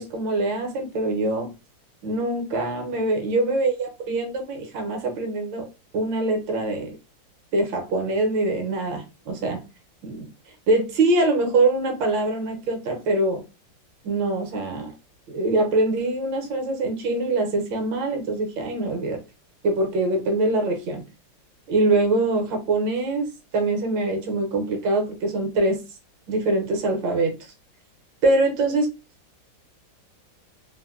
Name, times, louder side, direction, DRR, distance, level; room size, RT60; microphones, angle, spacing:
voice 1, 0.0-1.5 2.0-5.7 5.9-7.0 7.5-9.7 10.0-10.3 10.7-13.4 14.0-14.9 15.3-19.2 19.6-21.1 21.7-25.8 26.3-27.4 28.2-28.9, right 2 dB, 80° right, 1.6 m, -24 dB
3.4 x 2.6 x 2.4 m
omnidirectional pair, 2.0 m